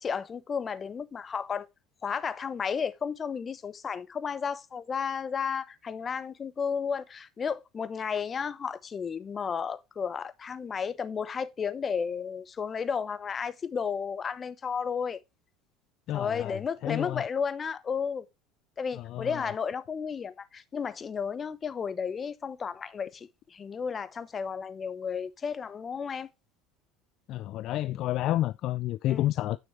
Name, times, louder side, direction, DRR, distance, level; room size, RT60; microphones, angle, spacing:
voice 1, 0.0-1.7 2.0-15.2 16.1-18.3 18.8-26.3 29.1-29.3, left 6 dB, 30° left, 0.9 m, -33 dB
voice 2, 16.1-17.2 18.9-19.4 27.3-29.6, left 14 dB, 55° left, 0.4 m, -30 dB
9.5 x 6.3 x 3.2 m
hypercardioid pair, 75°, 0 cm